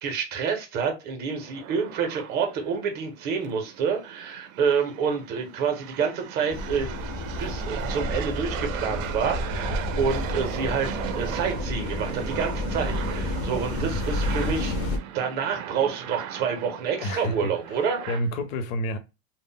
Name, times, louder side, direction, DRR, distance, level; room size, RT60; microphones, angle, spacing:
voice 1, 0.0-6.9 7.4-14.8 15.1-18.0, right 6 dB, 25° right, 0.5 m, -28 dB
sound 1, 1.3-18.2, right 11 dB, 90° right, 0.5 m, -37 dB
sound 2, 6.5-15.0, left 1 dB, 30° left, 0.3 m, -30 dB
voice 2, 17.0-19.0, equal, 85° left, 0.7 m, -30 dB
2.1 x 2.0 x 3.6 m
supercardioid pair, 160°, 39 cm